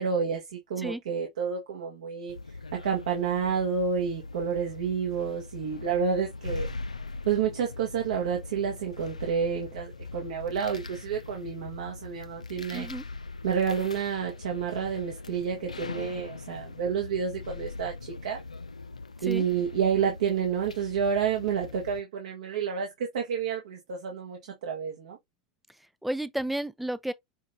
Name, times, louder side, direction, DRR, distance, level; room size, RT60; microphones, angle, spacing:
voice 1, 0.0-2.3 2.7-6.7 7.2-12.9 13.4-18.4 19.2-25.2, right 7 dB, 70° right, 1.3 m, -29 dB
sound 1, 2.3-22.0, left 3 dB, 90° left, 0.5 m, -41 dB
voice 2, 12.7-13.1 19.2-19.4 26.0-27.1, right 1 dB, ahead, 0.6 m, -32 dB
6.0 x 3.1 x 2.6 m
figure-of-eight pair, 85°, 4 cm